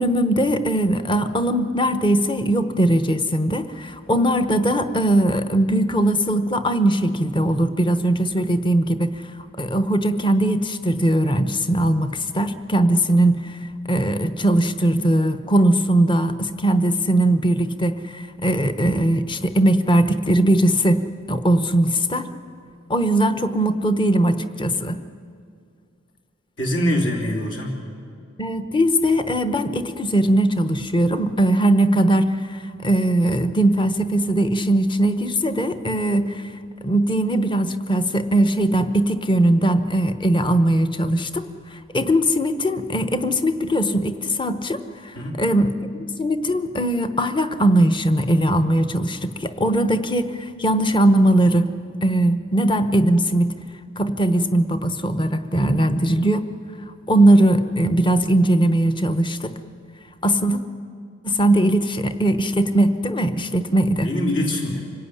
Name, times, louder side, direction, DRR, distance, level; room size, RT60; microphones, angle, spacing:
voice 1, 0.0-9.2 9.6-13.6 13.9-22.3 22.9-25.0 28.4-36.4 36.8-41.5 41.9-44.8 45.4-45.9 46.2-51.8 52.0-53.6 54.0-56.4 57.1-59.5 60.2-60.6 61.2-64.1, right 1 dB, 25° left, 10 dB, 1.0 m, -20 dB
voice 2, 26.6-27.7 45.1-45.4 64.0-64.8, left 1 dB, 65° left, 0 dB, 3.4 m, -23 dB
25.5 x 17.0 x 9.8 m, 2.3 s
head